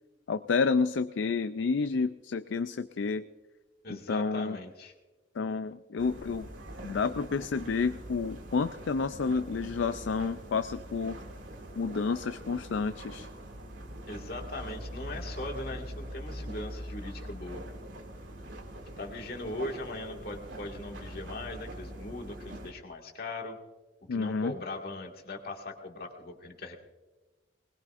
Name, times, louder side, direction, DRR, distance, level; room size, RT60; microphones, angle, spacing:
voice 1, 0.3-3.2 3.9-4.6 5.4-6.5 6.8-11.2 11.8-13.3 24.1-24.5, left 4 dB, 70° left, 12 dB, 0.4 m, -30 dB
voice 2, 3.8-4.9 14.1-17.6 19.0-23.6 24.1-26.8, left 2 dB, 50° left, 2 dB, 2.0 m, -39 dB
sound 1, 6.0-22.7, equal, 75° right, 2.4 m, -43 dB
20.5 x 20.5 x 2.5 m, 1.2 s
head